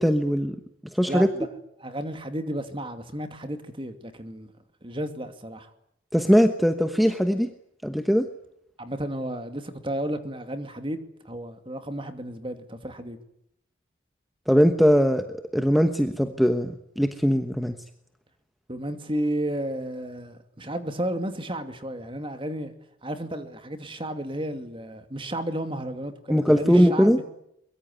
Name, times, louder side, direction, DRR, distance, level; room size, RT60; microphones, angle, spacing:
voice 1, 0.0-0.6 0.9-1.3 6.1-7.5 7.8-8.3 14.5-17.7 26.3-27.2, equal, ahead, 1.1 m, -20 dB
voice 2, 1.1-1.5 1.8-4.5 4.8-5.7 8.8-13.2 18.7-22.7 23.0-27.2, right 1 dB, 25° right, 2.5 m, -32 dB
23.0 x 22.5 x 9.5 m
head